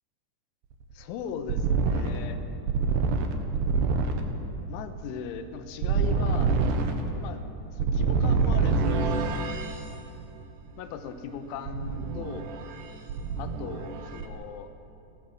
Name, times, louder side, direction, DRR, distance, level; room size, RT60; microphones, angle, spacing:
sound 1, 0.7-9.8 11.7-12.8 13.1-14.3, right 4 dB, 70° right, 3.2 m, -26 dB
voice 1, 0.9-2.4 4.7-6.6 7.2-7.4 7.8-9.2 10.8-12.5 13.4-14.7, left 7 dB, 90° left, 8 dB, 3.4 m, -38 dB
29.5 x 14.5 x 6.4 m, 2.8 s
omnidirectional pair, 5.4 m